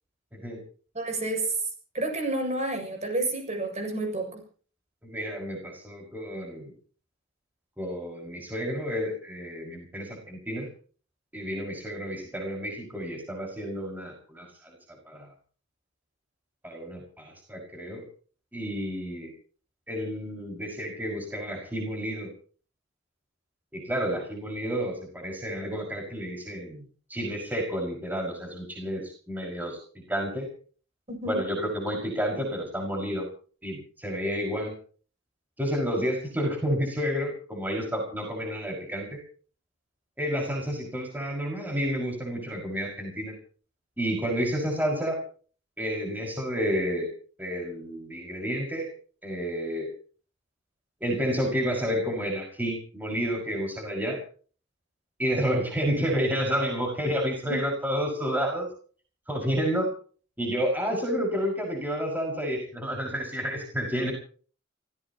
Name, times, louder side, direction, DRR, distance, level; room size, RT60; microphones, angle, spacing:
voice 1, 0.9-1.5 1.9-4.4 31.1-31.4 57.5-57.6, right 2 dB, 35° right, 4 dB, 7.1 m, -30 dB
voice 2, 5.0-6.7 7.8-10.7 11.3-14.8 15.1-15.3 16.6-18.0 18.5-19.3 19.9-22.3 23.7-26.8 27.1-30.5 31.3-33.3 33.6-34.7 35.6-39.2 40.2-43.3 44.0-45.2 45.8-47.1 47.4-48.9 49.2-49.9 51.0-54.2 55.2-58.7 59.3-59.9 60.4-64.1, equal, 10° right, 0 dB, 5.7 m, -30 dB
29.0 x 16.5 x 3.0 m, 0.42 s
head